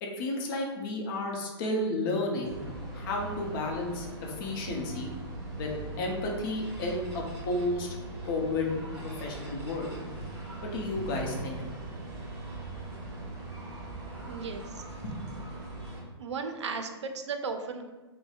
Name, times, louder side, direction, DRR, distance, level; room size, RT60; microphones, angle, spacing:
voice 1, 0.0-2.6 2.9-5.1 5.6-7.9 8.2-8.7 9.0-9.9 10.6-11.8, left 2 dB, 50° left, 0 dB, 0.7 m, -32 dB
sound 1, 2.4-16.0, right 2 dB, 30° right, 1.0 m, -40 dB
voice 2, 14.3-14.8 16.2-17.9, right 4 dB, 85° right, 6 dB, 0.4 m, -35 dB
4.0 x 2.1 x 2.4 m, 1.2 s
hypercardioid pair, 125°, 14 cm